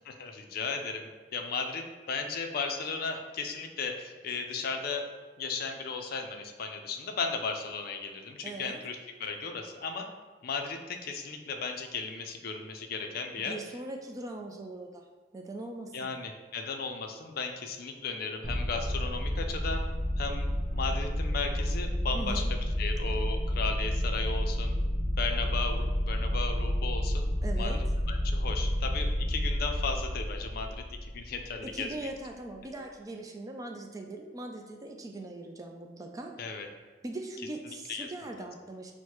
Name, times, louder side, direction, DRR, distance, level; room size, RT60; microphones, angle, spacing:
voice 1, 0.0-1.8 2.1-5.1 5.4-10.1 10.4-13.5 15.9-19.8 20.2-20.5 20.7-24.8 25.2-27.3 27.6-27.8 28.1-31.9 36.4-36.7 37.7-38.5, left 4 dB, 55° left, 4 dB, 0.4 m, -35 dB
voice 2, 8.4-8.8 13.5-15.1 15.3-16.2 22.1-22.5 27.4-27.8 31.6-36.6 37.0-38.9, right 2 dB, 20° right, 3 dB, 0.3 m, -40 dB
sound 1, 18.4-31.8, equal, 35° right, 0.7 m, -30 dB
6.3 x 2.1 x 2.9 m, 1.4 s
head